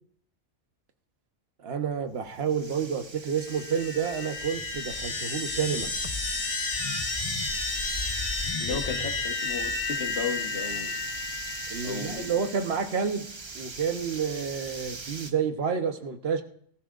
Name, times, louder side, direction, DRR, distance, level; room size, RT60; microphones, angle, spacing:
voice 1, 1.6-5.9 8.7-9.1 11.7-13.2 13.5-16.4, right 6 dB, 60° right, 7 dB, 1.2 m, -29 dB
sound 1, 2.1-15.3, right 4 dB, 30° right, 0.6 m, -40 dB
sound 2, 3.4-12.6, left 4 dB, 30° left, 0.9 m, -32 dB
voice 2, 8.6-11.0 11.8-12.3, left 5 dB, 60° left, 5 dB, 1.4 m, -35 dB
20.5 x 14.0 x 2.5 m, 0.62 s
omnidirectional pair, 1.2 m